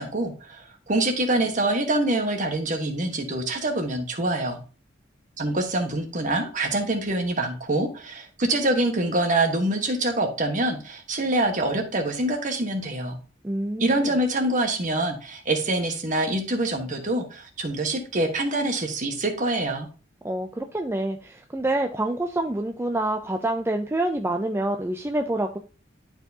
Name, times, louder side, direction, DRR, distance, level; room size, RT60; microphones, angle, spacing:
voice 1, 0.0-4.6 5.4-13.2 13.8-19.9, right 2 dB, 40° right, 4 dB, 1.4 m, -25 dB
voice 2, 13.4-14.1 20.2-25.6, right 1 dB, 15° right, 4 dB, 0.4 m, -27 dB
11.5 x 4.5 x 2.8 m, 0.35 s
head